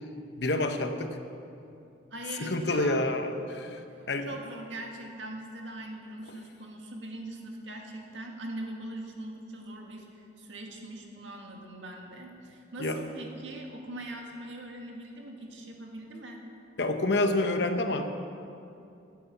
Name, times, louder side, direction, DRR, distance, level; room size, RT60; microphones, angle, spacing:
voice 1, 0.4-1.2 2.4-4.3 12.8-13.0 16.8-18.1, left 2 dB, 65° left, 6 dB, 0.9 m, -28 dB
voice 2, 2.1-3.0 3.9-16.5, right 1 dB, 80° right, 1 dB, 1.9 m, -41 dB
12.5 x 8.5 x 7.2 m, 2.6 s
head